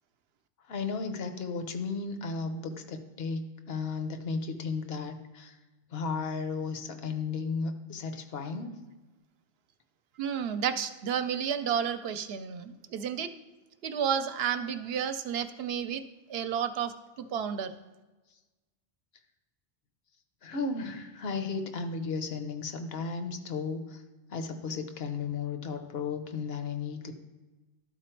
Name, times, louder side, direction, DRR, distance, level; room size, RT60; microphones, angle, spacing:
voice 1, 0.7-5.5 5.9-8.8 20.4-24.0 24.3-27.1, left 4 dB, 75° left, 7 dB, 1.0 m, -34 dB
voice 2, 10.2-13.3 13.8-16.0 16.3-16.9 17.2-17.7, right 8 dB, 75° right, 10 dB, 0.8 m, -31 dB
12.0 x 4.1 x 4.5 m, 1.2 s
omnidirectional pair, 1.0 m